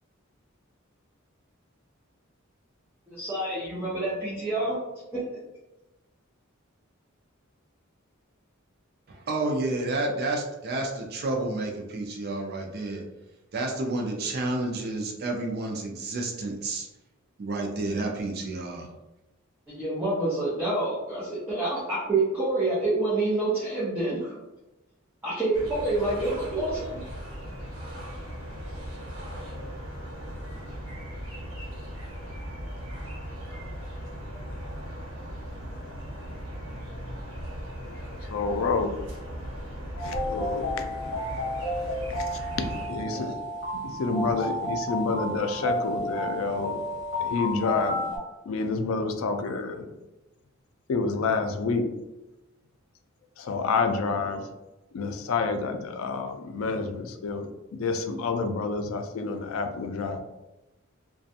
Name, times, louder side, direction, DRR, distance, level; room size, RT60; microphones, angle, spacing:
voice 1, 3.1-4.8 5.1-5.2 19.7-24.3 25.2-27.1, right 2 dB, 10° right, -11 dB, 0.6 m, -27 dB
voice 2, 9.1-13.0 13.5-16.9 17.4-18.9, right 2 dB, 50° right, 1 dB, 0.4 m, -30 dB
sound 1, 25.5-42.9, equal, 85° right, 1.0 m, -38 dB
voice 3, 37.8-38.9 40.0-41.4 41.9-43.4 43.7-46.8 47.2-48.1 48.5-49.9 50.9-51.9 53.4-54.5 54.9-60.2, left 4 dB, 80° left, 6 dB, 0.4 m, -29 dB
sound 2, 40.0-48.2, left 1 dB, 55° left, 0.8 m, -31 dB
2.4 x 2.2 x 2.6 m, 1.0 s
head